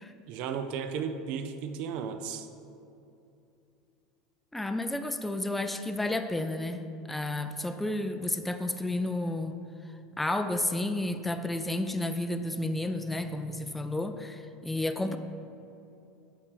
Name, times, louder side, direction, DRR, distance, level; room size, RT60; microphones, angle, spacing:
voice 1, 0.3-2.5, right 6 dB, 55° right, 8 dB, 0.5 m, -34 dB
voice 2, 4.5-9.6 10.2-15.2, left 1 dB, 5° left, 7 dB, 0.4 m, -31 dB
8.5 x 3.3 x 6.7 m, 2.7 s
supercardioid pair, 115°, 2 cm